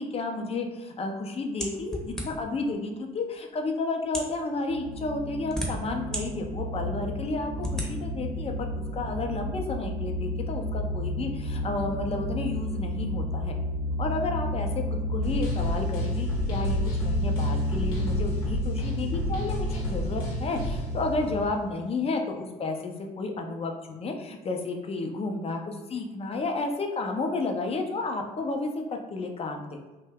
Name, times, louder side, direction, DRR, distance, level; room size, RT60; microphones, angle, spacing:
voice 1, 0.0-13.6 14.0-14.7 15.1-29.8, left 3 dB, 30° left, 3 dB, 0.5 m, -32 dB
sound 1, 1.6-2.6 3.4-3.5 4.0-4.4 5.1-6.2 6.7-6.8 7.6-7.9, equal, 5° left, 0.8 m, -33 dB
sound 2, 4.7-21.5, left 1 dB, 45° right, 0.6 m, -31 dB
sound 3, 15.2-20.9, left 1 dB, 80° left, 0.8 m, -33 dB
2.6 x 2.1 x 3.4 m, 1.2 s
hypercardioid pair, 50°, 19 cm